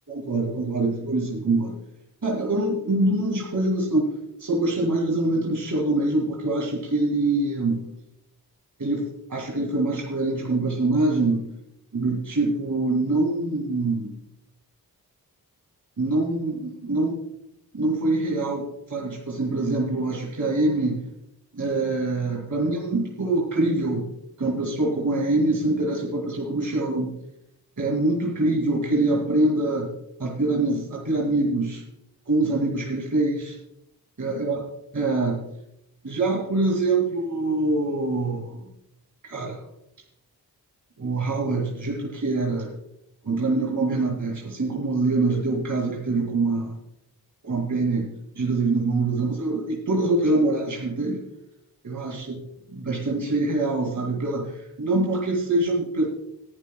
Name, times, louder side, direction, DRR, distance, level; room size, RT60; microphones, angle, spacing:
voice 1, 0.1-1.8 2.2-4.1 4.4-7.8 8.8-11.4 11.9-14.1 16.0-17.2 17.7-21.0 21.5-24.0 24.4-27.1 27.8-29.9 30.2-31.8 32.3-33.6 34.2-34.6 34.9-35.4 36.0-38.7 39.2-39.6 41.0-42.7 43.2-46.7 47.4-48.1 48.3-51.2 51.8-52.4 52.7-56.1, right 2 dB, 55° right, -2 dB, 2.7 m, -24 dB
19.5 x 11.0 x 2.3 m, 0.81 s
wide cardioid pair, 90°, 37 cm